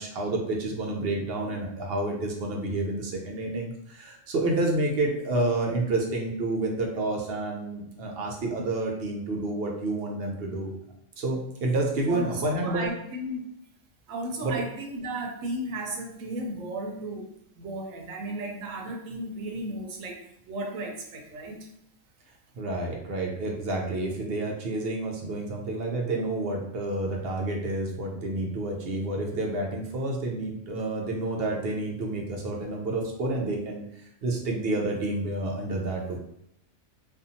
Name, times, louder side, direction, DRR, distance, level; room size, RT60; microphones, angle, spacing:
voice 1, 0.0-10.7 11.2-12.9 14.4-14.6 22.6-33.8 34.2-36.2, right 2 dB, 60° right, 0 dB, 0.7 m, -29 dB
voice 2, 12.1-13.4 14.1-17.3 17.6-20.2 20.5-21.7, right 1 dB, 80° right, 1 dB, 1.0 m, -34 dB
2.6 x 2.4 x 2.6 m, 0.77 s
omnidirectional pair, 1.4 m